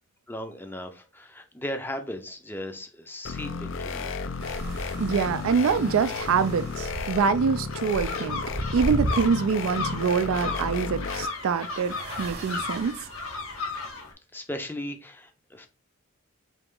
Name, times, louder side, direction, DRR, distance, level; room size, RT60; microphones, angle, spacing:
voice 1, 0.3-4.1 14.3-15.7, left 1 dB, 10° left, 0.5 m, -37 dB
sound 1, 3.2-11.3, left 5 dB, 60° left, 0.4 m, -33 dB
sound 2, 4.4-13.9, right 1 dB, 50° right, 0.9 m, -37 dB
voice 2, 5.0-8.4 8.7-13.0, right 6 dB, 75° right, 0.3 m, -25 dB
sound 3, 7.7-14.1, left 4 dB, 80° left, 1.1 m, -35 dB
4.3 x 2.9 x 3.7 m
head